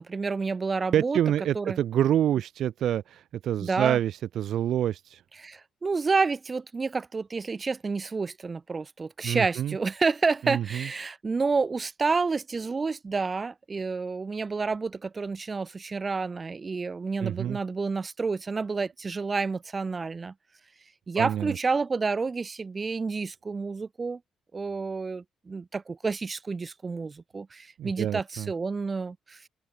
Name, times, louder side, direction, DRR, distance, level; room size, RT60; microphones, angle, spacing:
voice 1, 0.0-1.2 1.5-1.8 3.6-4.0 5.4-20.3 21.1-24.2 24.5-29.4, right 4 dB, 30° right, 0.8 m, -29 dB
voice 2, 0.9-5.2 9.2-9.8 10.4-10.9 17.2-17.6 21.2-21.6 27.8-28.5, right 11 dB, 70° right, 0.3 m, -27 dB
open air
cardioid pair, 90°, 0 cm